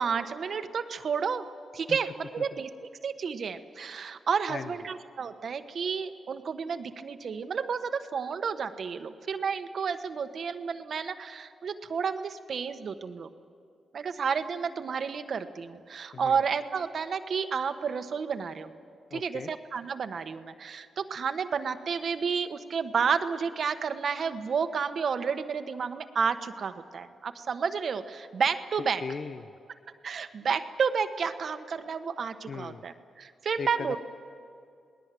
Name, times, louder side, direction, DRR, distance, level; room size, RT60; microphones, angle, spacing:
voice 1, 0.0-1.5 1.7-2.7 3.0-13.3 13.9-18.7 19.1-29.0 30.0-34.0, right 6 dB, 60° right, 9 dB, 1.2 m, -31 dB
voice 2, 19.1-19.5 29.0-29.5 32.5-32.8 33.6-34.0, left 5 dB, 55° left, 10 dB, 0.7 m, -38 dB
28.0 x 19.5 x 7.6 m, 2.5 s
cardioid pair, 75°, 0 cm